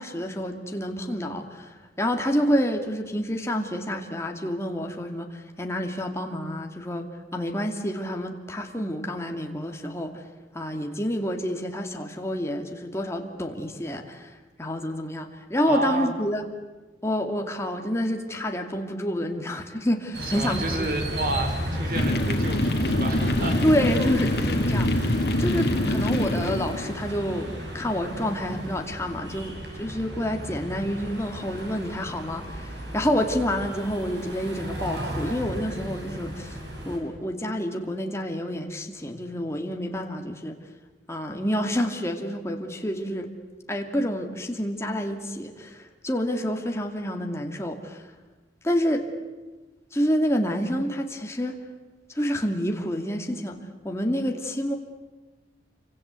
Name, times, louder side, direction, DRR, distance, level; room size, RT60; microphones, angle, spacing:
voice 1, 0.0-7.1 7.3-10.2 10.5-14.3 14.6-16.5 17.0-20.9 23.6-36.6 36.9-40.6 41.1-43.3 43.7-48.0 48.6-49.1 49.9-51.6 52.1-53.6 53.8-54.8, equal, 15° left, 3 dB, 2.4 m, -28 dB
voice 2, 15.6-16.2 20.2-23.6, right 2 dB, 50° right, 5 dB, 4.3 m, -30 dB
sound 1, 20.1-37.0, equal, 75° right, 7.0 m, -34 dB
sound 2, 21.9-27.0, left 1 dB, 60° left, 2.3 m, -25 dB
28.0 x 25.5 x 8.3 m, 1.2 s
head